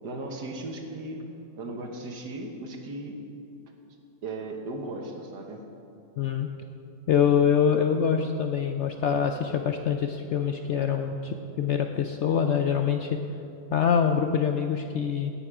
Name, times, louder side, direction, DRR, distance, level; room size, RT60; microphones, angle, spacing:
voice 1, 0.0-1.2 1.6-3.2 4.2-5.6, right 2 dB, 85° right, 2 dB, 1.8 m, -36 dB
voice 2, 6.2-6.5 7.1-13.2 13.7-15.3, left 7 dB, 80° left, 5 dB, 0.6 m, -25 dB
17.5 x 7.2 x 4.9 m, 2.6 s
omnidirectional pair, 1.8 m